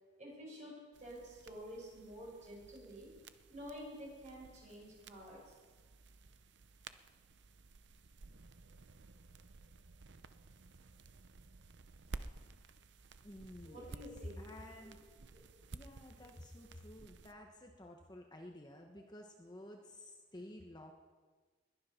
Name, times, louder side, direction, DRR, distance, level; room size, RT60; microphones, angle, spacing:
voice 1, 0.2-3.1 3.5-5.5 13.6-14.4 14.8-14.9 16.2-16.3, equal, 40° right, -3 dB, 6.4 m, -50 dB
sound 1, 0.9-17.3, right 3 dB, 65° right, 0.6 m, -55 dB
voice 2, 13.2-14.0 14.4-15.0 15.7-20.9, left 1 dB, 20° left, 2 dB, 1.0 m, -52 dB
21.0 x 10.5 x 5.8 m, 1.4 s
head